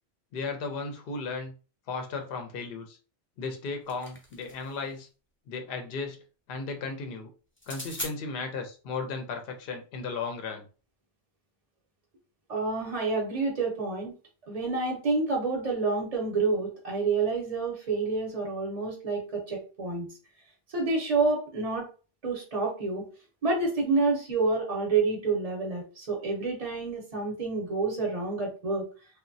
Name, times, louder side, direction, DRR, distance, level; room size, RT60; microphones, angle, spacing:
voice 1, 0.3-1.5 1.9-3.0 3.4-5.1 5.5-6.2 6.5-7.3 7.7-10.7, left 4 dB, 65° left, 5 dB, 0.7 m, -35 dB
sound 1, 3.5-4.8 7.6-8.1, left 1 dB, 15° left, 0.4 m, -40 dB
voice 2, 12.5-14.1 14.5-20.1 20.7-21.9 22.2-23.1 23.4-28.9, right 3 dB, 40° right, -1 dB, 0.7 m, -28 dB
2.9 x 2.1 x 2.6 m, 0.36 s
omnidirectional pair, 1.1 m